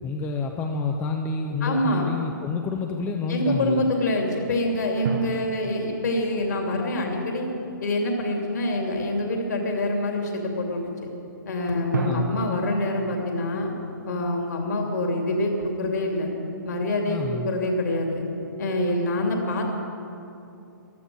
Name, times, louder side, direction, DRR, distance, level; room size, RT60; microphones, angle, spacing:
voice 1, 0.0-3.9 11.9-12.4 17.1-17.5, left 4 dB, 15° left, 3 dB, 0.7 m, -28 dB
voice 2, 1.6-2.1 3.3-7.5 7.8-10.8 11.5-13.7 14.1-16.3 16.6-18.2 18.6-19.7, left 1 dB, 60° left, 2 dB, 2.8 m, -26 dB
sound 1, 5.0-7.9 11.9-15.2, right 5 dB, 60° right, 1.2 m, -36 dB
14.5 x 12.5 x 6.3 m, 2.7 s
figure-of-eight pair, 120°, 11 cm